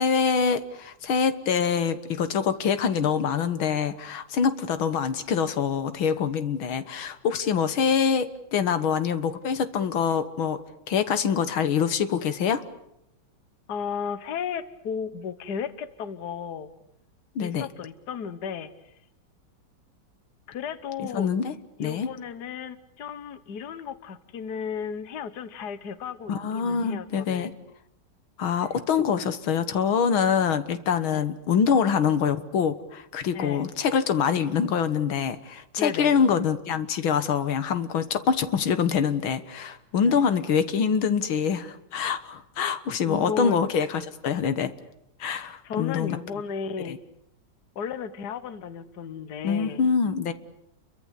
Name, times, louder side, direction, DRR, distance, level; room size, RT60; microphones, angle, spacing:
voice 1, 0.0-10.6 10.9-12.7 17.4-17.7 21.0-21.5 21.8-22.1 26.3-27.6 28.4-44.7 45.2-46.2 46.9-47.0 49.4-50.3, left 6 dB, 85° left, 11 dB, 2.2 m, -25 dB
voice 2, 13.7-16.7 17.4-18.7 20.5-21.3 21.8-27.5 31.1-31.2 33.3-33.7 35.8-36.2 40.0-40.2 43.0-43.6 45.6-47.0 47.8-49.8, left 7 dB, 55° left, 13 dB, 1.8 m, -34 dB
29.5 x 23.5 x 8.3 m, 0.79 s
omnidirectional pair, 2.2 m